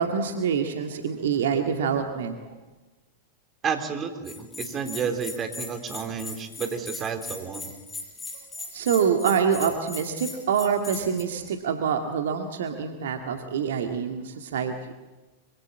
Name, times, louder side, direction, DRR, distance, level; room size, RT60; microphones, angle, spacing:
voice 1, 0.0-2.6 8.3-8.4 8.7-14.7, right 7 dB, 60° right, 5 dB, 2.0 m, -26 dB
voice 2, 3.6-7.7, right 6 dB, 25° right, 6 dB, 3.7 m, -31 dB
Bell, 4.2-11.2, left 3 dB, 10° left, 6.8 m, -38 dB
25.0 x 25.0 x 8.6 m, 1.2 s
figure-of-eight pair, 90°, 0 cm